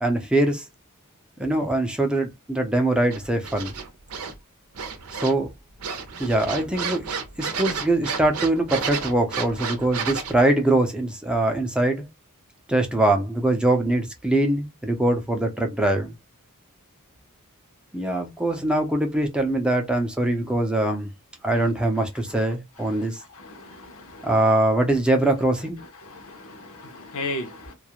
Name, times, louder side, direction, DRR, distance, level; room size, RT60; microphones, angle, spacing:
voice 1, 0.0-0.6 1.4-3.7 5.1-5.5 6.2-7.0 7.4-12.0 12.7-16.1 17.9-21.1 21.4-23.2 24.2-25.8, right 1 dB, 5° right, 0.5 m, -22 dB
sound 1, 3.1-4.3 4.8-5.5 5.8-10.4, right 6 dB, 85° right, 0.6 m, -31 dB
voice 2, 23.4-24.2 26.1-27.7, left 2 dB, 65° left, 0.7 m, -35 dB
2.3 x 2.1 x 2.8 m
head